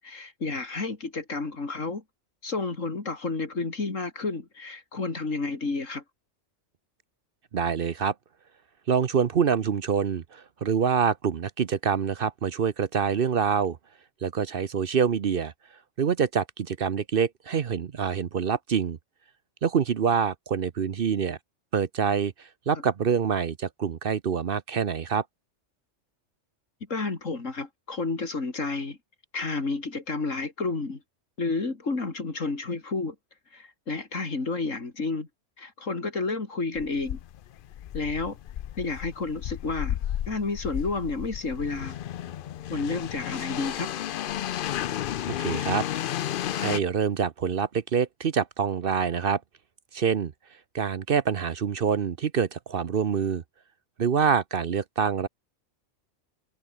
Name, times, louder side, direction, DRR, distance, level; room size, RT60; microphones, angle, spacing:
voice 1, 0.0-2.0 2.4-6.0 26.9-29.0 29.3-31.0 31.4-33.2 33.5-35.3 35.6-37.2 37.9-38.4 38.8-40.0 40.3-42.0 42.7-43.9, left 3 dB, 85° left, 3.5 m, -31 dB
voice 2, 7.5-8.1 8.9-13.8 14.2-15.5 16.0-19.0 19.6-21.4 21.7-25.2 45.4-45.8 46.6-49.4 49.9-50.3 50.7-53.4 54.0-55.3, right 7 dB, 50° right, 0.9 m, -26 dB
sound 1, 36.8-46.8, left 11 dB, 60° left, 0.6 m, -33 dB
omnidirectional pair, 1.3 m